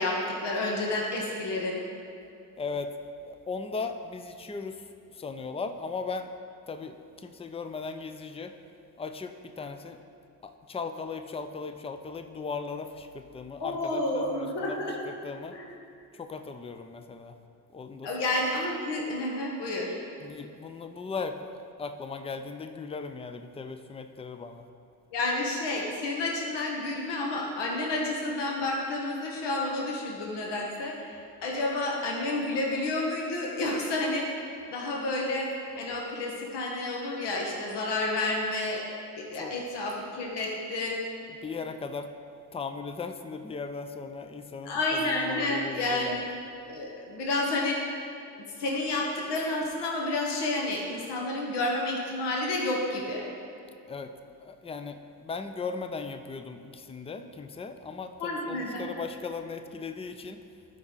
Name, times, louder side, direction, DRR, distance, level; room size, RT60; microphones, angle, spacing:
voice 1, 0.0-1.8 13.6-15.0 15.5-15.8 18.0-19.9 25.1-35.5 35.8-38.8 39.2-41.0 44.6-46.3 46.6-47.8 48.5-53.3 58.2-58.9, left 2 dB, 60° left, -1 dB, 1.5 m, -30 dB
voice 2, 2.6-3.0 3.2-6.3 6.7-8.5 9.0-10.0 10.4-15.6 16.1-17.4 17.7-18.2 20.2-24.6 39.3-39.6 41.3-42.1 42.5-46.3 53.9-60.4, left 4 dB, 15° left, 8 dB, 0.5 m, -38 dB
12.0 x 5.0 x 4.0 m, 2.5 s
hypercardioid pair, 60°, 46 cm